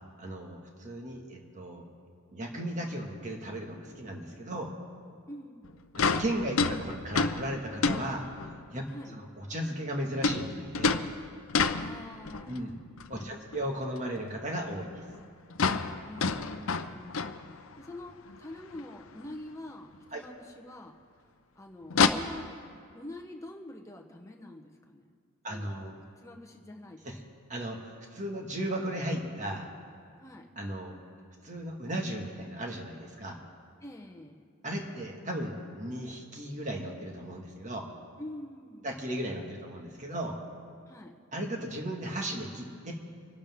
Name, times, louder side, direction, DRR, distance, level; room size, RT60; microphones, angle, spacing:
voice 1, 0.2-1.8 2.3-4.8 6.0-8.2 8.7-8.8 9.1-11.0 12.5-12.8 13.1-15.0 20.1-20.2 25.4-25.9 27.0-27.2 27.5-29.7 30.6-30.9 31.4-33.4 34.6-37.8 38.8-40.4 41.3-42.9, right 1 dB, 35° right, 1 dB, 1.8 m, -36 dB
voice 2, 5.3-5.8 8.9-9.2 11.7-12.8 13.1-13.9 16.0-21.0 21.6-22.5 22.9-25.1 25.5-25.7 26.2-27.2 30.2-30.5 33.8-34.4 38.2-38.9 40.9-41.1, left 1 dB, 15° left, 1 dB, 1.0 m, -46 dB
sound 1, 5.6-5.7 5.9-8.6 10.2-12.6 13.0-13.7 14.0-14.1 14.4-14.5 14.8-14.9 15.1-15.2 15.5-17.9 18.3-18.4 18.7-18.8 19.9-20.0 21.9-22.1, left 4 dB, 65° left, 0.6 m, -29 dB
26.0 x 12.0 x 3.7 m, 2.2 s
head